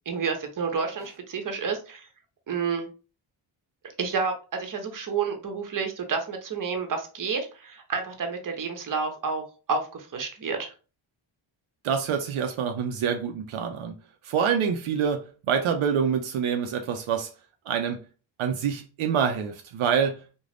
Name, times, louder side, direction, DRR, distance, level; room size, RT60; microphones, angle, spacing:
voice 1, 0.1-2.1 2.5-2.9 4.0-9.4 9.7-10.7, right 5 dB, 40° right, 0.8 m, -30 dB
voice 2, 11.8-13.9 14.2-17.3 17.7-18.0 18.4-20.2, right 7 dB, 80° right, 0.6 m, -26 dB
2.5 x 2.1 x 3.3 m
cardioid pair, 75°, 49 cm